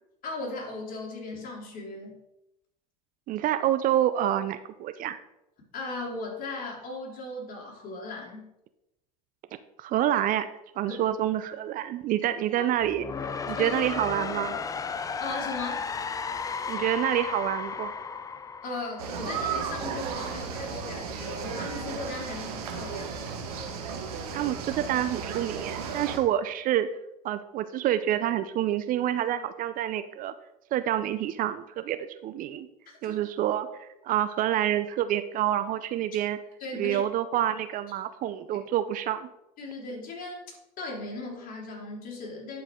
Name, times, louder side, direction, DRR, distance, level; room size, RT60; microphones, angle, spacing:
voice 1, 0.2-2.2 5.7-8.5 10.9-11.0 13.5-13.8 14.3-14.4 15.2-15.8 18.6-23.3 33.0-33.2 36.6-37.0 38.5-38.6 39.6-42.6, left 2 dB, 45° left, -2 dB, 3.2 m, -37 dB
voice 2, 3.3-5.2 9.8-10.5 10.8-13.1 13.5-14.6 16.7-17.9 24.3-26.9 27.2-30.3 30.7-32.7 33.0-36.4 36.7-39.3, right 12 dB, 45° right, 12 dB, 0.5 m, -27 dB
sound 1, 12.8-19.7, left 5 dB, 20° left, 0.4 m, -34 dB
sound 2, 19.0-26.2, right 6 dB, 85° right, 1.5 m, -35 dB
11.0 x 4.7 x 3.7 m, 0.88 s
hypercardioid pair, 90°, 19 cm